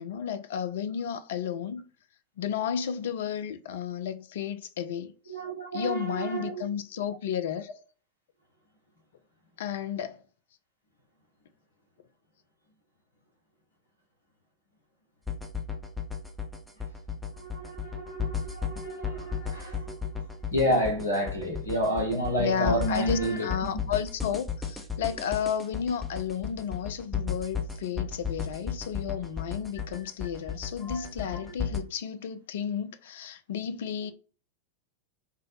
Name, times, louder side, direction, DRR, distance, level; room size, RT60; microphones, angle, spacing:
voice 1, 0.0-1.9 2.4-5.1 5.7-7.7 9.6-10.2 22.4-34.1, left 8 dB, 55° left, 0.3 m, -32 dB
voice 2, 5.3-6.6 7.2-7.4 17.3-23.5 30.8-31.6, equal, 75° left, 1.0 m, -30 dB
sound 1, 15.3-31.8, left 6 dB, 5° left, 0.5 m, -34 dB
3.6 x 2.0 x 2.7 m
figure-of-eight pair, 90°, 0 cm